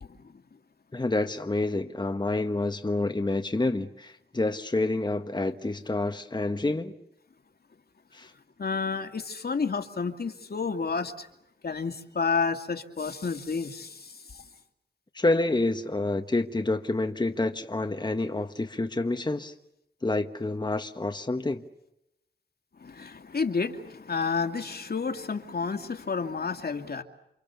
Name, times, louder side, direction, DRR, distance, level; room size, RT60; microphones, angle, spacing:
voice 1, 0.9-6.9 8.1-8.3 15.1-19.5 20.0-21.6, left 2 dB, 25° left, 1.4 m, -28 dB
voice 2, 8.6-11.3 11.6-13.9 22.8-27.0, left 5 dB, 60° left, 2.4 m, -30 dB
29.5 x 26.5 x 7.0 m
wide cardioid pair, 80°, 18 cm